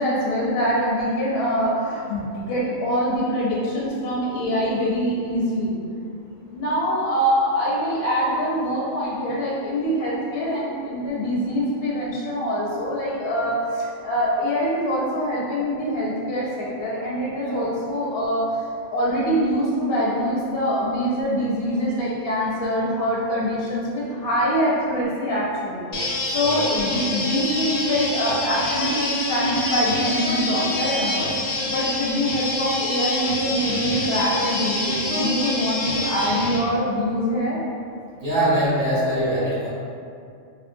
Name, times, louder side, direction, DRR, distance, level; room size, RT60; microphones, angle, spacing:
voice 1, 0.0-5.7 6.5-18.6 18.9-31.3 31.7-37.6, equal, 65° left, -5 dB, 0.7 m, -24 dB
sound 1, 25.9-36.6, left 1 dB, 90° left, 1.0 m, -26 dB
voice 2, 38.2-39.7, right 1 dB, 40° right, -10 dB, 1.0 m, -22 dB
2.7 x 2.3 x 2.5 m, 2.4 s
omnidirectional pair, 1.3 m